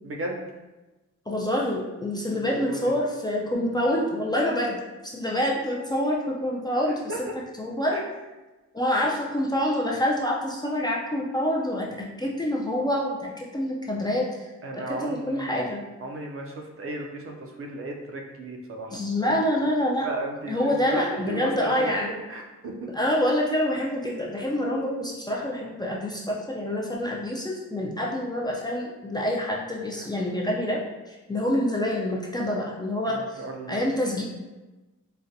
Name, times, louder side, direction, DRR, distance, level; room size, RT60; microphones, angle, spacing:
voice 1, 0.0-0.4 2.3-3.1 6.8-7.2 7.9-8.0 14.6-15.7 16.0-19.0 19.2-19.3 20.0-22.0 22.3-22.9 30.0-30.1 33.1-33.8, right 2 dB, 50° right, 1 dB, 0.5 m, -35 dB
voice 2, 1.3-7.0 7.6-8.0 8.7-11.9 12.2-14.5 15.0-15.8 18.9-20.1 20.5-22.2 22.9-30.8 31.1-33.4 33.7-34.2, left 1 dB, 15° left, -3 dB, 0.4 m, -26 dB
4.0 x 2.1 x 2.6 m, 1.1 s
wide cardioid pair, 120°, 29 cm